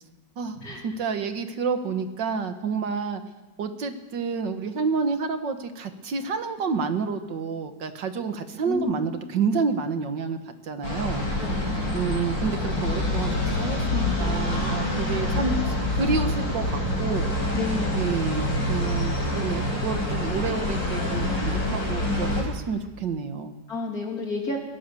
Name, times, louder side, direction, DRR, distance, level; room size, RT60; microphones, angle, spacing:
voice 1, 0.4-3.2 3.6-11.3 11.9-17.3 18.0-23.5, right 5 dB, 70° right, 8 dB, 2.0 m, -29 dB
voice 2, 8.7-9.1 11.4-12.1 17.5-18.2 23.7-24.6, left 3 dB, 50° left, 0 dB, 3.7 m, -31 dB
sound 1, 10.8-22.4, left 1 dB, 80° left, 5.7 m, -26 dB
22.0 x 17.0 x 6.9 m, 1.1 s
omnidirectional pair, 2.0 m